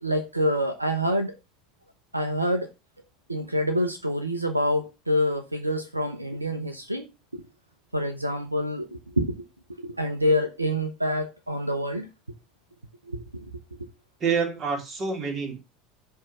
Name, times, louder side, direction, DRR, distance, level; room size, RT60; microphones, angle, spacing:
voice 1, 0.0-1.3 2.1-2.7 3.3-7.1 7.3-7.4 7.9-9.4 9.7-12.1 13.1-13.5 13.8-13.9, equal, 85° right, 0.8 m, -27 dB
voice 2, 14.2-15.6, right 5 dB, 35° right, 3.4 m, -27 dB
11.0 x 3.7 x 6.1 m
figure-of-eight pair, 70°, 0 cm